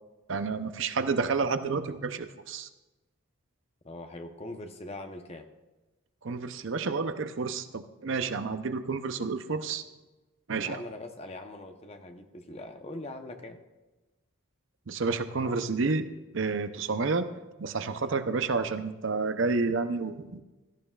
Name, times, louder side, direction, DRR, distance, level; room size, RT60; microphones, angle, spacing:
voice 1, 0.3-2.7 6.2-9.8 10.5-10.8 14.9-16.1 16.3-17.3 17.6-20.4, right 4 dB, 60° right, 10 dB, 0.6 m, -30 dB
voice 2, 3.8-5.5 10.6-13.6, left 2 dB, 30° left, 6 dB, 0.8 m, -42 dB
16.5 x 13.5 x 2.4 m, 1.1 s
head